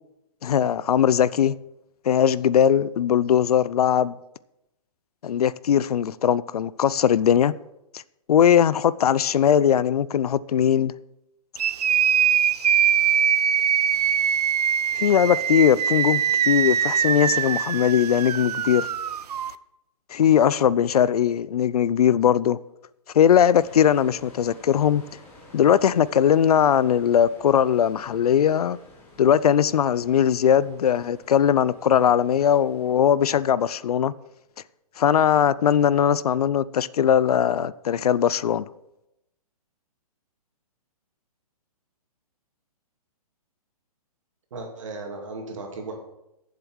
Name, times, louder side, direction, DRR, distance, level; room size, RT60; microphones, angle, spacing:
voice 1, 0.4-1.6 2.1-4.1 5.2-7.5 8.3-10.9 15.0-18.9 20.1-22.6 23.1-25.0 25.5-28.8 29.2-34.1 35.0-38.7, left 9 dB, 75° left, 0.5 m, -20 dB
sound 1, 11.6-19.5, right 8 dB, 85° right, 0.6 m, -22 dB
sound 2, 23.6-33.0, left 2 dB, 10° left, 1.3 m, -51 dB
voice 2, 44.5-45.9, right 3 dB, 55° right, 2.7 m, -35 dB
10.0 x 7.5 x 6.3 m
hypercardioid pair, 175°, 20 cm